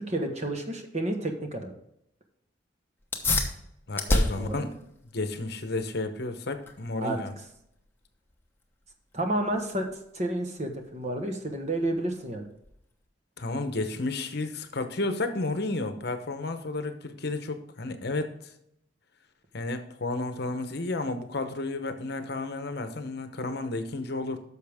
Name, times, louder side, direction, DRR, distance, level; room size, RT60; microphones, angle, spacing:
voice 1, 0.0-1.7 4.3-4.6 7.0-7.2 9.1-9.9 10.1-12.5, right 1 dB, 35° right, 5 dB, 1.3 m, -30 dB
sound 1, 3.0-13.1, left 2 dB, 10° left, 1.0 m, -34 dB
voice 2, 3.9-4.7 5.1-7.3 13.4-18.5 19.5-24.4, left 2 dB, 55° left, 8 dB, 0.9 m, -32 dB
10.5 x 6.7 x 3.5 m, 0.76 s
head